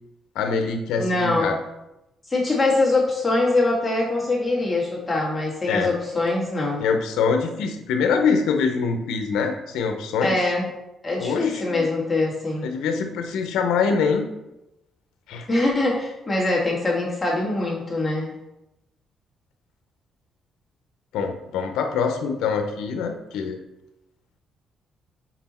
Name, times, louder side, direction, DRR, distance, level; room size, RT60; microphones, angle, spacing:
voice 1, 0.3-1.6 5.7-5.9 6.8-10.4 11.2-11.9 12.6-14.3 15.3-15.5 21.1-23.6, left 5 dB, 85° left, 5 dB, 0.8 m, -24 dB
voice 2, 1.0-1.5 2.3-6.8 10.2-10.7 11.0-12.7 15.5-18.3, left 2 dB, 20° left, -3 dB, 2.2 m, -23 dB
6.0 x 4.6 x 4.3 m, 0.91 s
cardioid pair, 90°, 0 cm